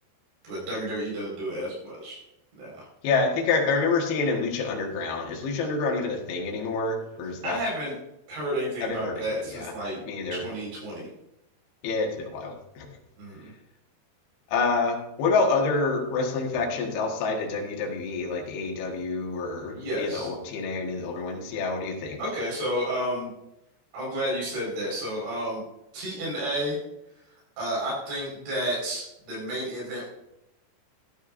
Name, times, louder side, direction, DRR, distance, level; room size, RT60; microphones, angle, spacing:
voice 1, 0.4-2.2 2.6-2.9 7.4-7.9 8.3-10.0 10.3-11.1 13.2-13.5 19.7-20.3 22.2-23.3 23.9-25.6 25.9-26.8 27.6-30.0, equal, 85° right, -4 dB, 7.3 m, -31 dB
voice 2, 3.0-7.6 8.8-9.7 10.0-10.4 11.8-12.9 14.5-22.2, left 4 dB, 70° left, 1 dB, 3.3 m, -27 dB
13.0 x 13.0 x 2.6 m, 0.85 s
omnidirectional pair, 4.9 m